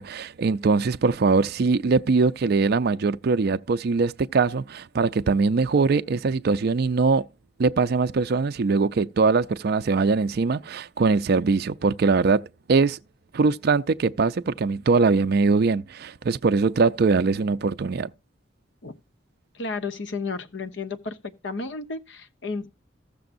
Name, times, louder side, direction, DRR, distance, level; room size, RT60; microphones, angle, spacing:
voice 1, 0.0-7.2 7.6-12.4 12.7-13.0 13.3-18.1, right 4 dB, 55° right, 0.4 m, -22 dB
voice 2, 19.5-21.2 21.4-22.7, left 3 dB, 70° left, 1.0 m, -32 dB
15.0 x 6.9 x 2.6 m
head